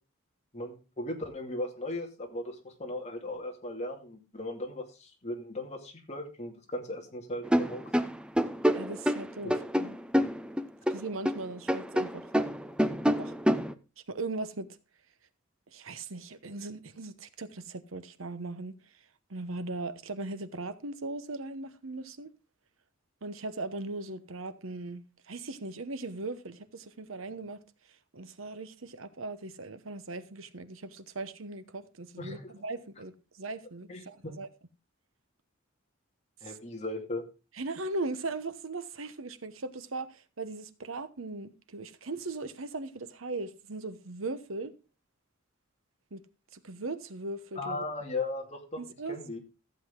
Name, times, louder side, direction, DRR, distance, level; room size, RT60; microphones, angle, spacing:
voice 1, 0.5-7.8 9.4-9.5 32.2-32.5 33.9-34.4 36.4-37.2 47.6-48.8 49.1-49.4, left 2 dB, 35° left, 2.4 m, -37 dB
sound 1, 7.4-11.4 11.7-13.7, equal, 5° right, 0.6 m, -27 dB
voice 2, 8.7-9.9 10.9-12.2 13.2-13.3 14.1-14.7 15.7-18.8 19.3-22.3 23.2-27.6 28.1-34.5 36.4-36.6 37.6-44.7 46.1-46.2 46.5-47.9 48.8-49.2, right 2 dB, 80° right, 1.0 m, -39 dB
14.5 x 7.8 x 3.7 m
head